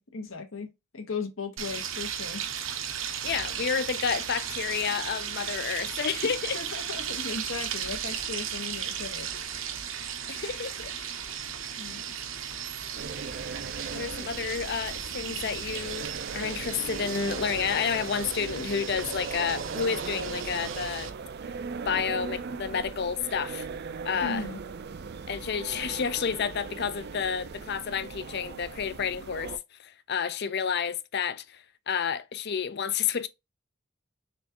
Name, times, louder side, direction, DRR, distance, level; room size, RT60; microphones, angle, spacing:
voice 1, 0.0-2.4 6.2-9.6 11.8-12.0 24.2-24.6, left 4 dB, 75° left, 1.3 m, -37 dB
sound 1, 1.6-21.1, right 8 dB, 75° right, 0.9 m, -36 dB
voice 2, 3.2-6.6 10.3-10.9 13.9-16.1 16.3-21.1 21.8-23.7 24.0-24.4 25.3-29.5 29.8-33.3, left 7 dB, 55° left, 0.5 m, -30 dB
sound 2, 13.0-29.6, right 5 dB, 55° right, 0.4 m, -38 dB
4.2 x 3.5 x 2.9 m
head